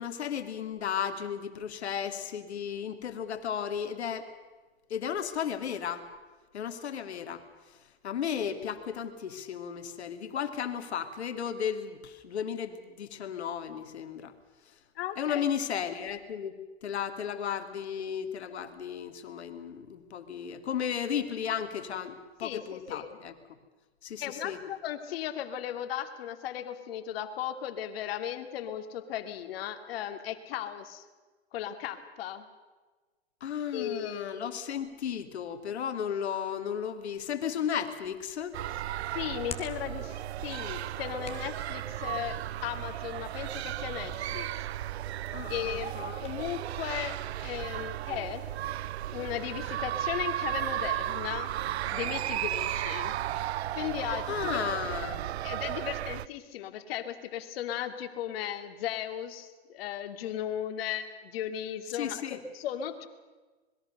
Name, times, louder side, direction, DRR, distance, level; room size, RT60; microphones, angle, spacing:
voice 1, 0.0-4.3 4.9-6.0 6.5-7.4 8.0-14.3 15.2-16.5 16.8-23.3 24.0-24.6 33.4-38.5 45.3-46.2 54.3-55.3 61.9-62.4, left 8 dB, 80° left, 8 dB, 2.6 m, -34 dB
voice 2, 15.0-15.5 22.4-23.2 24.2-31.0 31.5-32.4 33.7-34.3 39.1-44.7 45.5-46.0 46.2-47.2 47.4-48.4 49.1-51.5 51.9-53.2 53.7-54.6 55.4-63.1, left 10 dB, 65° left, 9 dB, 2.6 m, -36 dB
Hands, 38.0-46.4, left 6 dB, 20° left, 2.7 m, -51 dB
sound 1, 38.5-56.3, right 13 dB, 75° right, 0.6 m, -34 dB
26.5 x 21.5 x 6.7 m, 1.3 s
hypercardioid pair, 110°, 33 cm